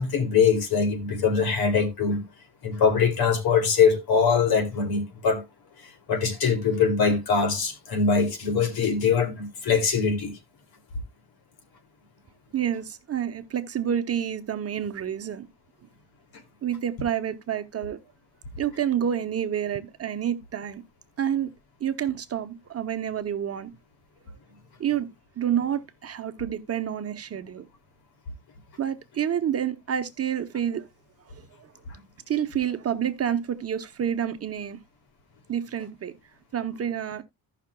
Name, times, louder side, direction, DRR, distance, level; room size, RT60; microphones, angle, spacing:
voice 1, 0.0-2.2 2.6-5.4 6.1-10.3 31.9-32.0, left 5 dB, 65° left, 2.6 m, -22 dB
voice 2, 12.5-15.5 16.6-18.0 18.6-20.8 21.2-21.5 21.8-23.7 24.8-25.1 25.4-27.7 28.8-30.9 31.3-31.7 32.3-34.8 35.5-36.1 36.5-37.2, right 9 dB, 40° right, 0.9 m, -28 dB
16.0 x 5.8 x 2.2 m
cardioid pair, 100°, 39 cm